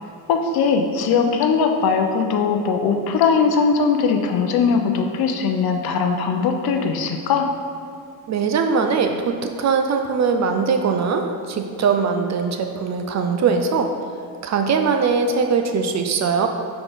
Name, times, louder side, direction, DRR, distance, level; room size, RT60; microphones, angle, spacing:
voice 1, 0.3-7.5, left 5 dB, 60° left, 5 dB, 0.7 m, -20 dB
voice 2, 8.3-13.9 14.4-16.5, right 5 dB, 45° right, 5 dB, 0.4 m, -21 dB
4.6 x 4.2 x 5.0 m, 2.4 s
cardioid pair, 130°, 41 cm